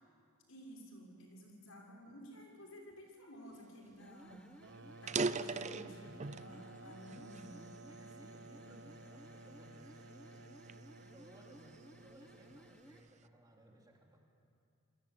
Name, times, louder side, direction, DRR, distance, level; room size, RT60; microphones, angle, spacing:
voice 1, 0.5-4.5 5.0-7.8 8.5-8.7, equal, 80° left, 0 dB, 6.7 m, -53 dB
sound 1, 3.9-13.1, equal, 5° left, 1.1 m, -60 dB
sound 2, 3.9-4.0 4.3-4.4 4.9-6.5 7.1-8.4 8.9-9.2 9.8-11.9, right 4 dB, 35° right, 0.6 m, -39 dB
sound 3, 4.6-13.1, right 2 dB, 60° right, 1.0 m, -54 dB
voice 2, 7.9-14.2, right 1 dB, 20° right, 0 dB, 3.3 m, -62 dB
29.0 x 23.0 x 8.8 m, 2.5 s
head